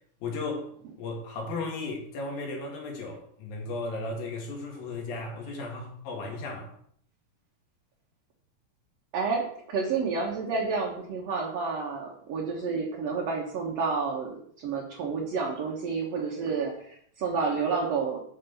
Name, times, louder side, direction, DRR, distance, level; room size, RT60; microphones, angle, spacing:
voice 1, 0.2-0.7 1.0-6.7, left 3 dB, 80° left, 1 dB, 3.7 m, -35 dB
voice 2, 9.1-18.2, right 4 dB, 60° right, -1 dB, 2.0 m, -30 dB
7.5 x 5.9 x 6.8 m, 0.64 s
omnidirectional pair, 4.1 m